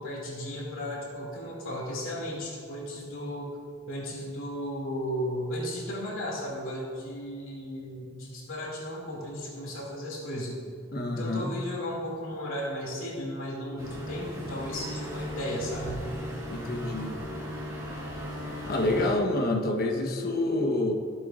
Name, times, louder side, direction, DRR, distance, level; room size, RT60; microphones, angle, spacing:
voice 1, 0.0-3.6 3.9-10.5 11.0-16.1, equal, 85° left, -3 dB, 2.5 m, -35 dB
voice 2, 10.9-11.5 16.5-17.1 18.7-20.9, left 2 dB, 50° left, 2 dB, 1.1 m, -27 dB
sound 1, 13.8-19.1, equal, 15° right, 2.0 m, -37 dB
15.5 x 7.7 x 2.5 m, 2.2 s
head